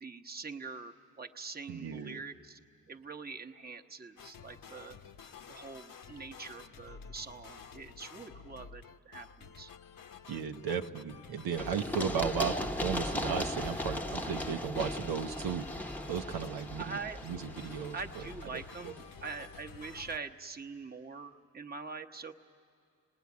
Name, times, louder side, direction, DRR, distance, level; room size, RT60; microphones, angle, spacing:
voice 1, 0.0-2.6 2.9-5.0 5.5-9.7 16.8-17.2 17.9-22.3, right 4 dB, 25° right, 4 dB, 1.0 m, -44 dB
voice 2, 1.7-2.2 10.3-15.7 16.1-17.0 17.2-18.0 18.8-18.9, right 7 dB, 90° right, 5 dB, 0.9 m, -35 dB
sound 1, 4.2-20.2, left 6 dB, 60° left, 0.9 m, -51 dB
Run, 11.6-19.2, left 1 dB, 5° left, 0.8 m, -38 dB
26.0 x 20.0 x 9.5 m, 2.4 s
cardioid pair, 65°, 37 cm